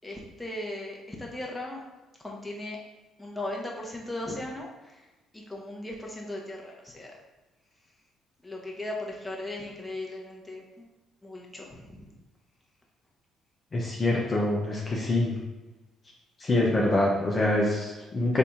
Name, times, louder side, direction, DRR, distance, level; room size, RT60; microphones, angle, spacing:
voice 1, 0.0-1.8 2.2-2.8 3.2-5.1 5.3-7.1 8.4-10.9 11.2-12.1, left 1 dB, 10° left, -2 dB, 1.1 m, -37 dB
voice 2, 13.7-15.4 16.4-18.4, left 1 dB, 35° left, -3 dB, 0.8 m, -25 dB
3.9 x 2.8 x 3.6 m, 1.1 s
hypercardioid pair, 50°, 0 cm